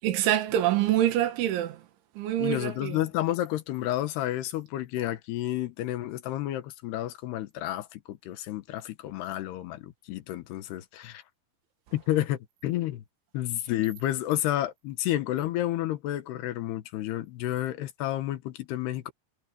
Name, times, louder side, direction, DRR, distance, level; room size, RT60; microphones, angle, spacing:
voice 1, 0.0-1.9 2.2-3.0, right 12 dB, 85° right, 4.1 m, -25 dB
voice 2, 2.4-11.2 11.9-13.0 13.3-19.1, left 14 dB, 70° left, 3.1 m, -30 dB
omnidirectional pair, 5.3 m